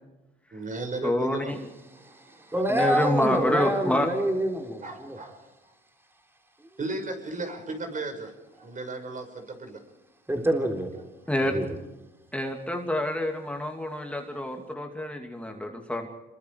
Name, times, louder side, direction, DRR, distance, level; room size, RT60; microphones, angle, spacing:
voice 1, 0.5-1.6 2.0-2.5 4.8-5.4 6.8-9.8 11.2-11.6 14.0-14.1, right 2 dB, 40° right, 5.7 m, -36 dB
voice 2, 1.0-1.6 2.7-4.1 11.3-11.5 12.3-16.1, left 1 dB, 5° left, 2.7 m, -27 dB
voice 3, 2.0-5.2 10.3-10.9 11.4-11.7, right 1 dB, 10° right, 3.7 m, -27 dB
27.0 x 23.0 x 4.9 m
cardioid pair, 90°, 20 cm